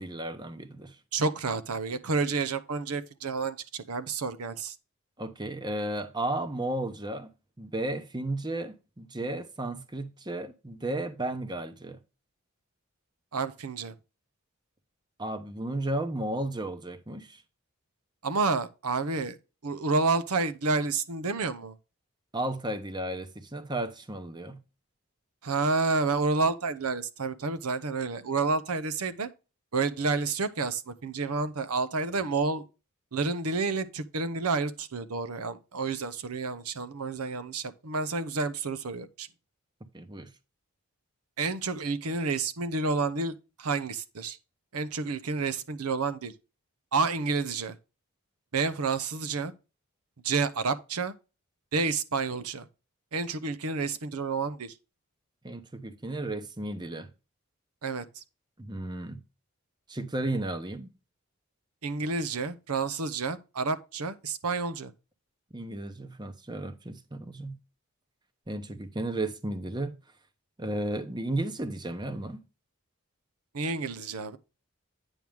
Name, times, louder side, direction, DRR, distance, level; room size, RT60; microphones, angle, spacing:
voice 1, 0.0-1.0 5.2-7.3 7.6-12.0 15.2-17.4 22.3-24.6 39.9-40.3 55.4-57.1 58.6-59.2 59.9-60.9 65.5-67.6 68.5-70.0 70.6-72.4, right 1 dB, 20° right, 0.8 m, -34 dB
voice 2, 1.1-4.7 13.3-13.9 18.2-19.4 19.6-21.8 25.4-29.3 29.7-32.7 33.1-39.3 41.4-43.3 43.6-44.4 44.7-46.3 46.9-47.7 48.5-49.5 50.2-51.1 51.7-52.7 53.1-54.7 57.8-58.2 61.8-64.9 73.5-74.4, right 4 dB, 85° right, 0.8 m, -29 dB
9.0 x 6.1 x 3.5 m
head